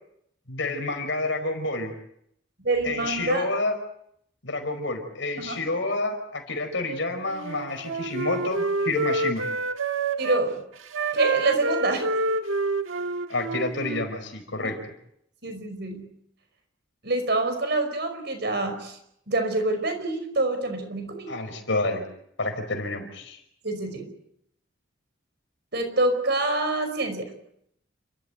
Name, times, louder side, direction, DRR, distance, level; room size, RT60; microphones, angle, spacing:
voice 1, 0.5-1.9 2.8-3.7 4.4-9.4 13.3-14.9 21.3-22.0 22.4-23.4, left 2 dB, 70° left, 5 dB, 5.3 m, -29 dB
voice 2, 2.6-3.5 5.4-5.6 10.2-10.6 11.1-12.2 14.6-14.7 15.4-16.1 17.0-19.0 19.3-21.3 23.6-24.1 25.7-27.3, right 2 dB, 55° right, 6 dB, 5.3 m, -26 dB
Wind instrument woodwind instrument, 7.3-10.5 10.9-14.1, right 3 dB, 90° right, 1.4 m, -27 dB
29.5 x 14.5 x 9.5 m, 0.73 s
head